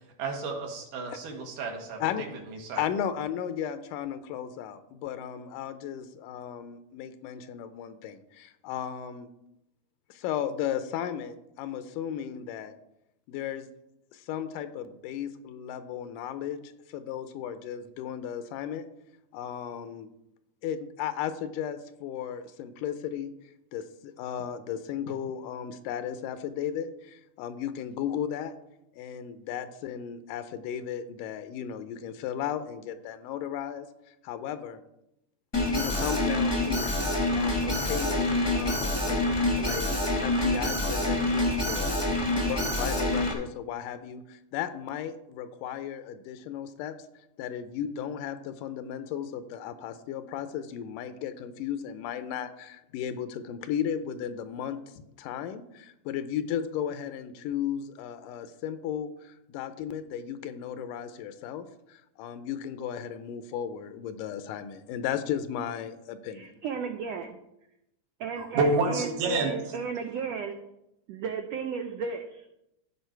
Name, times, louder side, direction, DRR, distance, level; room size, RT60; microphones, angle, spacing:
voice 1, 0.2-2.3 2.7-2.8 68.4-69.5, right 3 dB, 75° right, 2 dB, 3.0 m, -29 dB
voice 2, 2.8-9.3 10.1-12.7 13.3-13.7 14.1-18.8 19.3-20.1 20.6-23.3 23.7-28.5 29.0-33.9 34.2-34.8 35.7-37.0 37.3-39.2 39.6-39.9 40.2-42.0 42.3-46.9 47.4-66.5, left 9 dB, 80° left, 11 dB, 2.2 m, -35 dB
Alarm, 35.5-43.3, left 1 dB, 25° left, 0.5 m, -26 dB
voice 3, 66.3-67.3 68.2-70.6 71.1-72.5, right 6 dB, 90° right, 6 dB, 1.4 m, -34 dB
15.0 x 5.0 x 4.5 m, 0.84 s
omnidirectional pair, 3.8 m